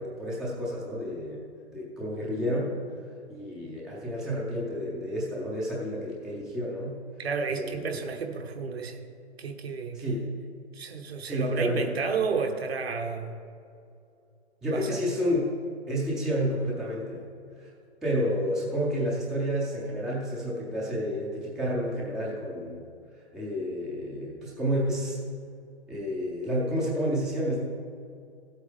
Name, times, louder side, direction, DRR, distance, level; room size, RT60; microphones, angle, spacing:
voice 1, 0.0-1.4 1.7-2.7 3.3-7.0 7.5-8.0 9.9-10.3 11.2-12.0 14.6-15.5 15.9-17.2 17.6-17.7 18.0-22.8 23.3-25.2 25.9-27.6, equal, ahead, -5 dB, 0.5 m, -30 dB
voice 2, 7.2-9.0 9.4-10.3 10.7-13.4 14.7-15.0, right 5 dB, 60° right, 4 dB, 1.3 m, -32 dB
14.5 x 8.2 x 3.5 m, 2.5 s
figure-of-eight pair, 135°, 34 cm